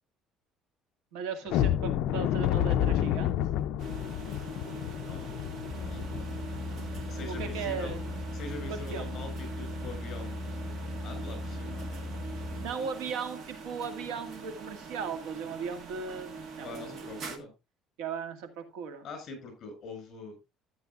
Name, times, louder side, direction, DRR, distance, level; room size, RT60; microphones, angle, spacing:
voice 1, 1.1-3.4 7.3-8.0 8.7-9.1 12.6-17.0 18.0-19.1, right 6 dB, 90° right, 8 dB, 2.0 m, -37 dB
sound 1, 1.5-8.2 8.6-8.7 9.2-9.3 9.8-10.0, left 11 dB, 65° left, 0.5 m, -30 dB
sound 2, 3.8-17.4, right 4 dB, 45° right, 1.5 m, -44 dB
voice 2, 4.2-4.5 5.0-5.3 5.8-6.3 7.1-7.9 8.3-10.4 10.6-10.7 11.0-12.1 12.5-12.8 16.6-17.5 19.0-20.3, left 3 dB, 35° left, 6 dB, 6.7 m, -44 dB
sound 3, 5.6-12.7, left 1 dB, 15° left, 6.6 m, -38 dB
13.5 x 9.3 x 2.4 m, 0.25 s
cardioid pair, 165°, 0 cm